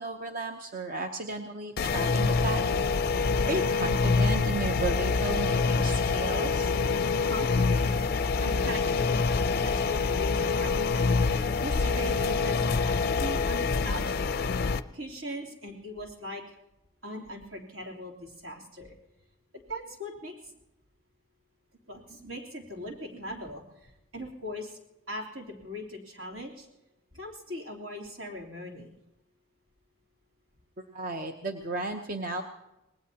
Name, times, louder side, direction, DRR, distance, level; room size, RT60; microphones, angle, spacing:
voice 1, 0.0-2.6 3.5-6.8 30.9-32.4, right 3 dB, 40° right, 4 dB, 0.8 m, -34 dB
sound 1, 1.8-14.8, left 4 dB, 45° left, 0.5 m, -26 dB
voice 2, 7.2-7.9 8.4-14.6 14.9-16.6 17.0-19.0 19.7-20.5 21.9-24.8 25.1-26.7 27.1-28.9, equal, 70° right, -1 dB, 3.3 m, -40 dB
26.0 x 19.5 x 2.9 m, 0.95 s
head